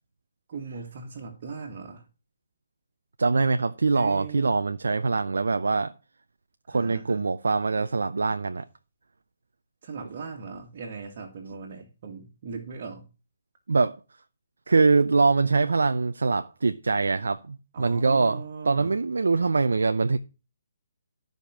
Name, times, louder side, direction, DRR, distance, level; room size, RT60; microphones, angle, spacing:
voice 1, 0.5-2.1 3.9-4.5 6.7-7.2 9.8-13.1 17.7-18.9, right 5 dB, 45° right, 2.1 m, -39 dB
voice 2, 3.2-5.9 6.7-8.6 13.7-14.0 14.7-20.2, right 4 dB, 85° right, 0.6 m, -23 dB
14.0 x 5.2 x 6.2 m
hypercardioid pair, 145°, 0 cm